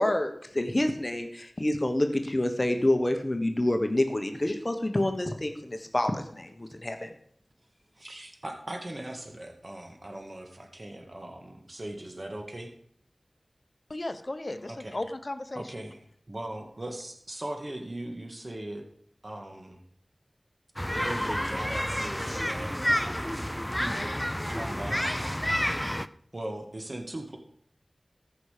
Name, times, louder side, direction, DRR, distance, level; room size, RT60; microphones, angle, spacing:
voice 1, 0.0-7.1, left 1 dB, 35° left, 6 dB, 1.2 m, -27 dB
voice 2, 8.0-12.7 14.7-15.0 15.5-18.8 19.2-19.8 20.9-22.7 23.8-24.1 24.5-25.3 26.3-27.4, right 1 dB, 50° right, 3 dB, 1.8 m, -39 dB
voice 3, 13.9-15.6, left 2 dB, 50° left, 10 dB, 0.9 m, -35 dB
sound 1, 20.8-26.1, equal, 10° left, 0.5 m, -29 dB
14.5 x 5.8 x 5.0 m, 0.62 s
wide cardioid pair, 45°, 0 cm